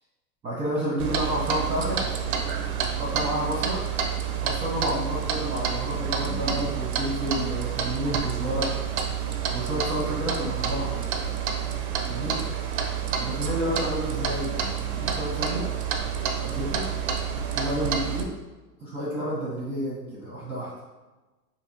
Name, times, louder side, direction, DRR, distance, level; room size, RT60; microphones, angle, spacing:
voice 1, 0.4-2.0 3.0-3.8 4.4-8.7 9.5-11.1 12.0-12.3 13.2-14.5 14.8-15.7 16.4-16.9 17.5-18.3 18.8-20.7, equal, 15° right, -7 dB, 0.7 m, -30 dB
Clock, 1.0-18.2, right 7 dB, 35° right, 0.4 m, -29 dB
4.3 x 2.7 x 2.7 m, 1.2 s
figure-of-eight pair, 95°, 49 cm